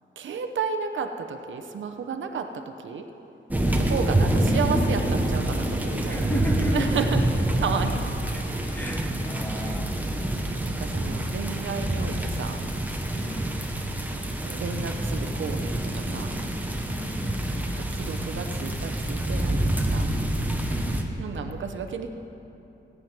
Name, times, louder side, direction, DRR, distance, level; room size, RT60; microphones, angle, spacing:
voice 1, 0.2-2.5 2.8-3.0 3.8-6.2 6.7-7.2 7.6-8.0 8.5-8.8 10.6-12.6 14.1-16.3 17.6-19.6 19.9-20.1 21.2-22.1, right 6 dB, 75° right, 6 dB, 0.8 m, -32 dB
sound 1, 3.5-21.0, right 1 dB, 10° right, 0.9 m, -27 dB
voice 2, 6.1-7.0 8.3-8.5 8.7-9.9 13.1-13.6 16.9-17.7 20.6-20.9, equal, 10° left, 1 dB, 1.3 m, -34 dB
17.0 x 9.4 x 6.0 m, 2.9 s
wide cardioid pair, 175°, 20 cm